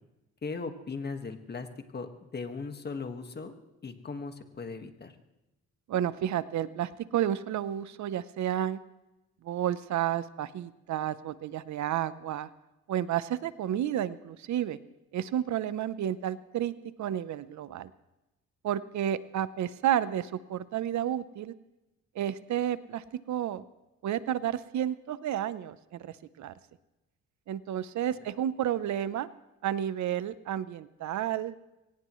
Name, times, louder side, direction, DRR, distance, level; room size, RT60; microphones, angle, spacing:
voice 1, 0.4-1.7 1.9-3.5 3.8-5.1, left 4 dB, 35° left, 7 dB, 1.7 m, -38 dB
voice 2, 5.9-8.8 9.4-12.5 12.9-14.8 15.1-16.7 17.0-17.9 18.6-21.5 22.1-23.6 24.0-26.5 27.5-29.3 29.6-31.5, right 11 dB, 70° right, 15 dB, 0.8 m, -31 dB
23.0 x 18.0 x 3.2 m, 0.99 s
cardioid pair, 90°, 30 cm